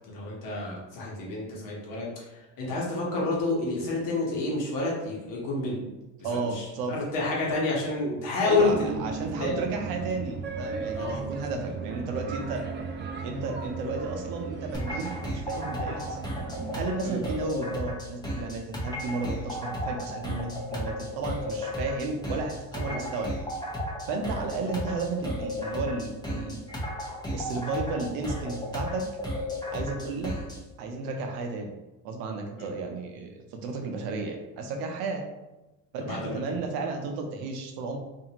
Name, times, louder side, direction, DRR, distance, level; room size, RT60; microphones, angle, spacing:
voice 1, 0.1-5.8 6.3-9.7 10.9-11.2 17.0-17.2 22.7-23.0 32.8-32.9 36.0-36.6, left 3 dB, 70° left, -4 dB, 1.2 m, -29 dB
voice 2, 6.2-7.0 8.4-12.6 13.2-16.2 16.7-23.3 24.1-26.6 27.3-29.1 29.7-30.4 30.8-31.8 32.0-35.2 35.9-38.0, right 3 dB, 85° right, 3 dB, 0.7 m, -33 dB
sound 1, 8.6-16.8, right 5 dB, 35° right, 0.4 m, -36 dB
sound 2, 14.7-30.6, left 1 dB, 10° left, 0.7 m, -34 dB
2.6 x 2.5 x 2.9 m, 1.0 s
cardioid pair, 110°, 34 cm